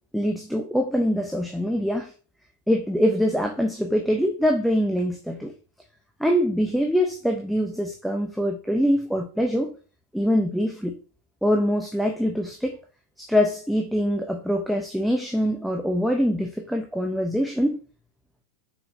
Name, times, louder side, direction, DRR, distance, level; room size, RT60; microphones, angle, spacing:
voice 1, 0.1-2.1 2.7-5.5 6.2-9.7 10.1-11.0 11.4-12.8 13.2-17.8, equal, ahead, 3 dB, 1.0 m, -24 dB
7.0 x 5.6 x 2.8 m, 0.36 s
figure-of-eight pair, 90°, 0 cm